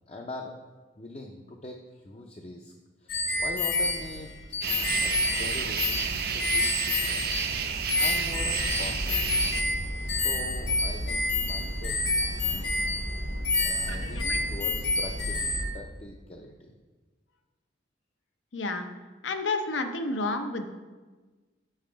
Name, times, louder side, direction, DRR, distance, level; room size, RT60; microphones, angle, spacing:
voice 1, 0.1-0.6 1.0-2.7 3.0-4.6 5.0-7.2 8.0-9.7 10.0-12.7 13.6-16.7, left 1 dB, 35° left, 1 dB, 0.5 m, -42 dB
sound 1, 3.1-7.6 7.9-15.6, left 2 dB, 65° left, 1.4 m, -29 dB
sound 2, 4.6-9.6, right 6 dB, 55° right, 0.6 m, -31 dB
sound 3, 8.1-15.7, equal, 75° right, 1.0 m, -35 dB
voice 2, 13.9-14.4 18.5-18.9 19.2-20.6, left 3 dB, 85° left, 7 dB, 0.7 m, -31 dB
6.6 x 5.6 x 5.0 m, 1.3 s
head